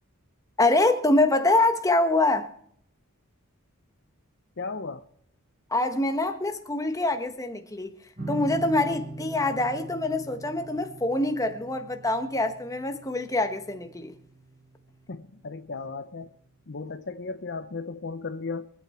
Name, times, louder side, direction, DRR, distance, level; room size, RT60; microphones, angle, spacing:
voice 1, 0.6-2.5 5.7-7.9 8.3-14.1, left 2 dB, 15° left, 1.3 m, -25 dB
voice 2, 4.6-5.0 15.1-16.3 16.7-18.7, left 4 dB, 55° left, 0.8 m, -35 dB
sound 1, 8.2-15.4, right 2 dB, 40° right, 4.2 m, -42 dB
23.5 x 8.4 x 4.4 m
head